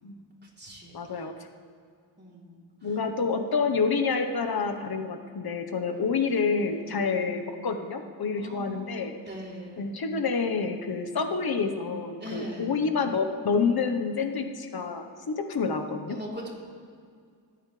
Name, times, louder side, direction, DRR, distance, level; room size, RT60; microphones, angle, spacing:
voice 1, 0.4-1.3 2.2-2.9 6.5-7.2 8.4-10.0 12.2-12.8 16.1-16.5, right 1 dB, 20° right, -4 dB, 3.5 m, -42 dB
voice 2, 0.9-1.3 2.8-9.2 9.8-16.2, left 5 dB, 50° left, 6 dB, 1.2 m, -28 dB
21.0 x 9.0 x 3.4 m, 2.2 s
cardioid pair, 70°, 46 cm